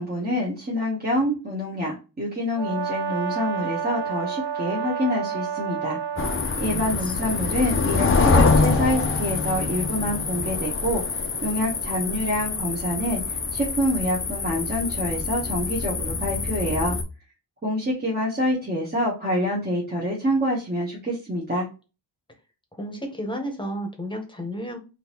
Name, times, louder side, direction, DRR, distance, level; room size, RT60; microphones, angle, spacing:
voice 1, 0.0-17.0 17.6-21.7, equal, 25° right, -4 dB, 1.0 m, -27 dB
Brass instrument, 2.5-6.4, right 7 dB, 90° right, 0.8 m, -29 dB
sound 1, 6.2-17.0, left 4 dB, 30° left, 0.6 m, -25 dB
voice 2, 6.7-7.1 22.7-24.8, equal, 10° left, 3 dB, 1.0 m, -32 dB
3.7 x 2.8 x 2.9 m, 0.31 s
wide cardioid pair, 120°, 42 cm